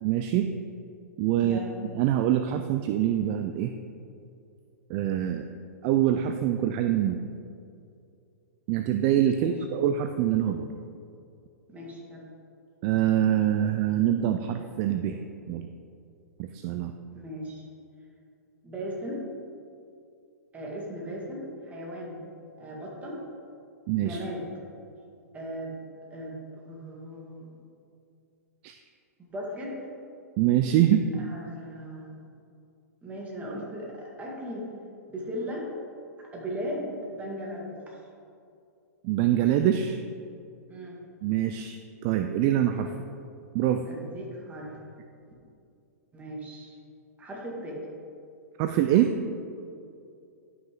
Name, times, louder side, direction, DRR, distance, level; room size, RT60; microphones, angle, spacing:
voice 1, 0.0-0.5 1.2-1.6 1.9-3.7 4.9-5.5 5.8-7.2 8.7-10.7 12.8-15.2 15.5-15.7 16.4-16.9 23.9-24.2 28.6-28.8 30.4-31.1 39.0-40.0 41.2-41.8 42.0-42.9 43.5-43.8 48.6-49.1, right 11 dB, 40° right, 7 dB, 0.4 m, -24 dB
voice 2, 1.4-1.7 9.3-9.5 11.7-12.3 17.1-17.6 18.6-19.2 20.5-22.2 22.6-23.2 24.0-24.5 25.3-25.8 26.1-27.5 29.3-29.8 31.2-32.2 33.0-34.7 35.1-35.7 36.2-38.0 40.7-41.0 42.8-42.9 43.9-44.8 46.1-46.8 47.2-47.8, equal, 15° right, -2 dB, 2.0 m, -37 dB
11.5 x 5.8 x 3.8 m, 2.5 s
hypercardioid pair, 125°, 9 cm